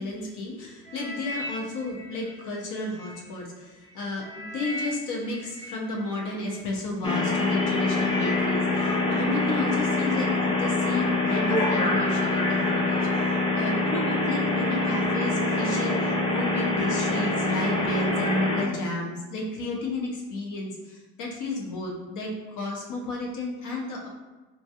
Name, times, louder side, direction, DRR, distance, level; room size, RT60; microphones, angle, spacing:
voice 1, 0.0-24.1, left 2 dB, 90° left, -1 dB, 0.7 m, -32 dB
sound 1, 0.8-3.2 3.7-6.6 7.3-7.4 7.7-10.0 10.6-10.8 11.1-12.7 13.0-13.5 14.1-14.2, left 2 dB, 40° left, 0.9 m, -39 dB
sound 2, 7.0-18.7, left 2 dB, 20° left, 0.4 m, -25 dB
3.5 x 2.3 x 2.7 m, 1.2 s
cardioid pair, 90°, 30 cm